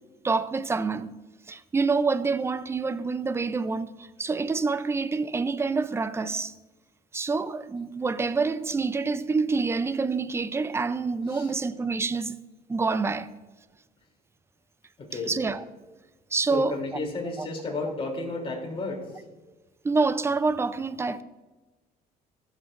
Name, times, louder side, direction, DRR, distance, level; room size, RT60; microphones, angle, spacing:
voice 1, 0.2-1.1 1.5-6.5 7.1-12.3 12.7-13.3 15.3-15.6 16.3-16.8 17.4-17.5 19.8-21.2, right 4 dB, 15° right, 0.4 m, -27 dB
voice 2, 15.0-15.3 16.5-19.0, left 3 dB, 35° left, 2.9 m, -32 dB
15.5 x 7.4 x 2.5 m
cardioid pair, 110°, 17 cm